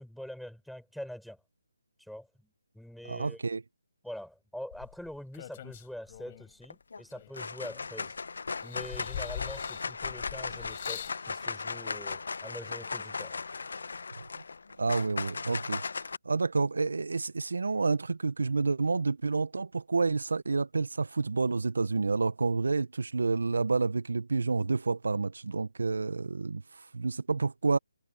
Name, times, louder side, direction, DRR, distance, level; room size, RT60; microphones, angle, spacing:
voice 1, 0.0-1.4 2.0-2.3 2.7-3.4 4.0-8.1 8.6-13.4, equal, ahead, 7.9 m, -44 dB
voice 2, 3.0-3.6 14.8-27.8, right 4 dB, 70° right, 1.3 m, -29 dB
sound 1, 4.7-6.5 7.1-8.2 8.6-11.2 12.1-12.2, left 11 dB, 35° left, 7.2 m, -43 dB
sound 2, 6.6-7.0 7.3-16.2, left 4 dB, 65° left, 1.3 m, -37 dB
figure-of-eight pair, 150°, 0 cm